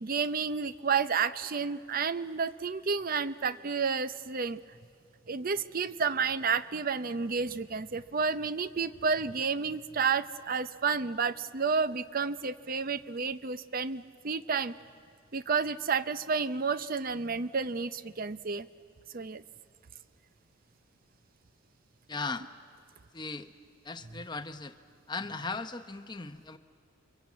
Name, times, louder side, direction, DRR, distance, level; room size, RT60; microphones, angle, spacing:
voice 1, 0.0-4.6 5.3-14.7 15.3-18.7 19.1-19.4, right 5 dB, 40° right, 14 dB, 0.6 m, -31 dB
voice 2, 22.1-22.5 23.1-23.5 23.8-24.8 25.1-26.6, left 3 dB, 20° left, 9 dB, 0.8 m, -37 dB
29.5 x 23.5 x 8.4 m, 2.3 s
head